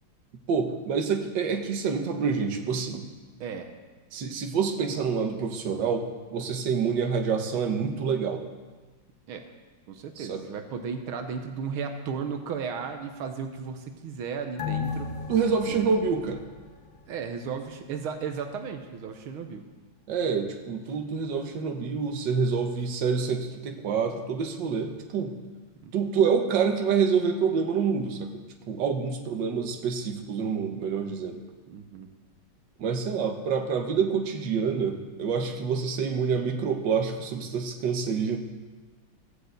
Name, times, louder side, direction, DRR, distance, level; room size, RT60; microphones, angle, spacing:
voice 1, 0.5-3.1 4.1-8.4 10.2-10.4 15.3-16.4 20.1-25.3 25.9-31.4 32.8-38.4, right 6 dB, 65° right, 4 dB, 1.8 m, -27 dB
voice 2, 3.4-3.7 9.3-9.5 9.9-15.2 15.7-15.9 17.1-19.7 25.8-25.9 31.7-32.1, right 6 dB, 85° right, 6 dB, 1.9 m, -35 dB
sound 1, 14.6-17.5 17.8-17.9, left 6 dB, 40° left, 1.7 m, -35 dB
15.0 x 8.2 x 8.0 m, 1.3 s
omnidirectional pair, 2.2 m